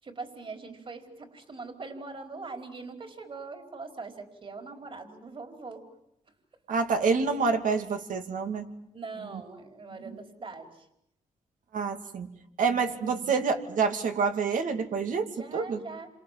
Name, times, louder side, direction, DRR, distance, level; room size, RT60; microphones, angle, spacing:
voice 1, 0.0-5.8 8.9-10.9 15.3-16.1, right 3 dB, 40° right, 5 dB, 4.7 m, -42 dB
voice 2, 6.7-8.7 9.3-9.4 11.7-12.3 12.6-15.8, right 5 dB, 75° right, 6 dB, 2.8 m, -27 dB
28.5 x 26.5 x 7.7 m, 0.79 s
cardioid pair, 85°, 13 cm